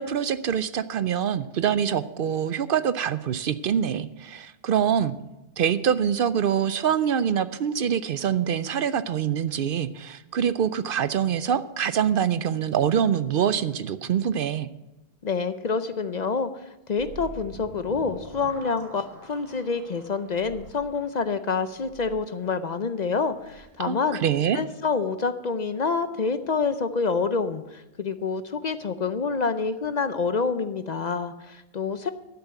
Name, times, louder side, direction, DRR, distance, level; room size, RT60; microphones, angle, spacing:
voice 1, 0.0-5.1 5.6-14.7 23.8-24.6, right 8 dB, 65° right, 14 dB, 0.7 m, -25 dB
voice 2, 15.2-24.2 24.5-32.1, left 5 dB, 50° left, 11 dB, 0.7 m, -27 dB
sound 1, 17.0-24.5, right 2 dB, 85° right, 2.1 m, -46 dB
11.5 x 7.0 x 8.1 m, 1.0 s
omnidirectional pair, 1.1 m